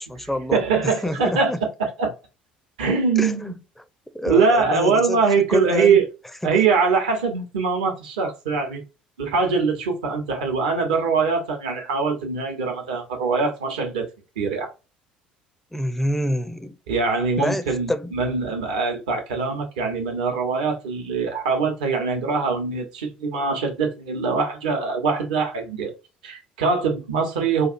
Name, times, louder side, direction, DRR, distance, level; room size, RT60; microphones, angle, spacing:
voice 1, 0.0-1.6 3.2-3.6 4.1-5.2 5.5-6.0 15.7-16.8 17.4-18.1, left 1 dB, 5° left, 0.5 m, -27 dB
voice 2, 0.5-2.1 2.8-3.6 4.3-6.0 6.4-8.8 9.2-14.1 14.4-14.7 16.9-25.9 26.2-27.7, right 5 dB, 70° right, 0.9 m, -22 dB
4.4 x 2.3 x 2.5 m
figure-of-eight pair, 60°, 4 cm